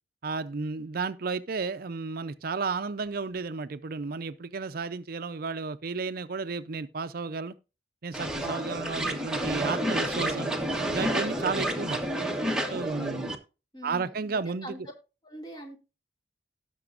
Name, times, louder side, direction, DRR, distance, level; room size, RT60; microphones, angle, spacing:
voice 1, 0.2-7.5 8.0-10.5 10.9-12.0 12.7-13.4 13.8-14.9, right 4 dB, 55° right, 0.5 m, -33 dB
sound 1, 8.1-13.4, right 1 dB, 5° right, 1.1 m, -30 dB
voice 2, 13.7-14.8 15.2-15.8, right 1 dB, 25° left, 2.3 m, -43 dB
18.0 x 6.0 x 2.5 m
head